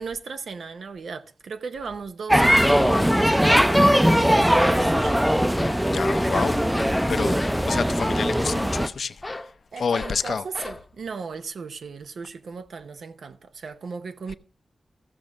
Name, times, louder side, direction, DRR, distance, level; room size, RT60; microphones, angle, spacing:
voice 1, 0.0-5.2 9.7-14.3, right 5 dB, 90° right, 0.7 m, -36 dB
sound 1, 2.3-8.9, equal, 5° right, 0.4 m, -20 dB
sound 2, 2.9-4.3 4.6-4.8 5.1-5.2 5.6-6.3 6.7-7.0 7.4-7.7 9.2-9.5 9.9-10.2 10.5-10.8, left 2 dB, 30° left, 0.7 m, -36 dB
voice 2, 5.8-9.2 9.8-10.4, left 5 dB, 80° left, 0.6 m, -29 dB
15.0 x 6.1 x 5.2 m
wide cardioid pair, 80°, 0 cm